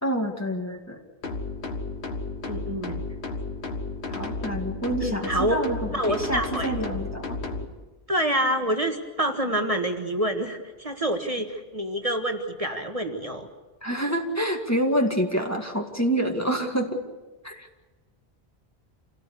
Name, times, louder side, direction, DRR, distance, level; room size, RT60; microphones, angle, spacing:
voice 1, 0.0-1.0 4.1-5.8 6.1-7.4 13.8-17.0 17.4-17.7, right 1 dB, 15° left, 2 dB, 2.1 m, -27 dB
sound 1, 1.2-7.7, left 3 dB, 90° left, 1.9 m, -33 dB
voice 2, 2.5-3.1 5.0-5.6 5.9-6.7 8.1-13.5, right 1 dB, 35° right, 4 dB, 1.7 m, -27 dB
27.5 x 18.0 x 8.4 m, 1.3 s
omnidirectional pair, 1.1 m